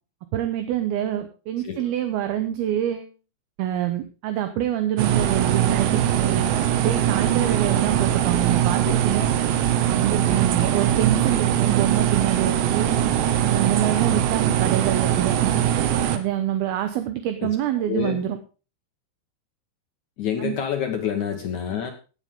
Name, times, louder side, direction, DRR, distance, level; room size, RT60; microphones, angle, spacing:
voice 1, 0.3-3.1 3.6-6.5 6.8-9.3 9.9-12.9 13.4-15.6 16.1-18.4 20.4-20.5, right 11 dB, 70° right, 8 dB, 2.6 m, -26 dB
sound 1, 5.0-16.2, right 10 dB, 90° right, 3.4 m, -21 dB
voice 2, 17.9-18.2 20.2-21.9, left 8 dB, 70° left, 4 dB, 1.8 m, -28 dB
17.0 x 9.0 x 3.6 m, 0.34 s
omnidirectional pair, 5.1 m